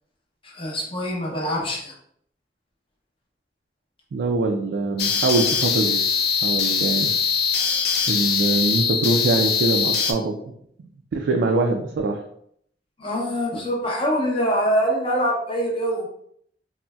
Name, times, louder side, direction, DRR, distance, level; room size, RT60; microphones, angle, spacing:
voice 1, 0.4-1.9 13.0-16.1, equal, 30° left, -1 dB, 0.7 m, -24 dB
voice 2, 4.1-6.1 6.4-7.1 8.1-10.4 11.1-12.2, right 3 dB, 70° right, 2 dB, 0.3 m, -23 dB
sound 1, 5.0-10.1, left 6 dB, 60° left, 0.4 m, -22 dB
3.8 x 2.1 x 2.2 m, 0.68 s
head